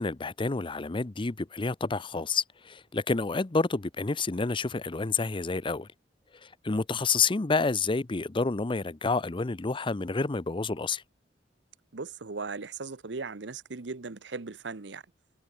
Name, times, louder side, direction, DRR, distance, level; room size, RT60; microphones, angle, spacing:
voice 1, 0.0-5.9 6.4-11.0, left 4 dB, 30° left, 0.6 m, -29 dB
voice 2, 11.9-15.0, right 4 dB, 70° right, 1.0 m, -38 dB
head